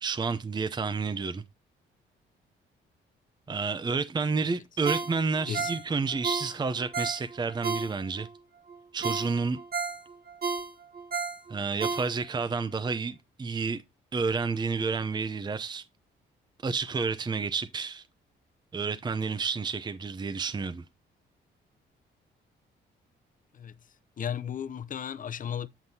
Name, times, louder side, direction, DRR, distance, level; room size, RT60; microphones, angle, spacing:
voice 1, 0.0-1.4 3.5-8.3 8.9-9.6 11.5-13.8 14.1-15.8 16.6-18.0 18.7-20.8, right 4 dB, 20° right, 0.6 m, -30 dB
Ringtone, 4.8-8.3 8.7-8.8 9.0-12.5 12.9-13.0, right 4 dB, 50° right, 1.2 m, -33 dB
voice 2, 24.2-25.7, left 8 dB, 40° left, 0.6 m, -34 dB
8.0 x 7.2 x 2.8 m
cardioid pair, 90°, 20 cm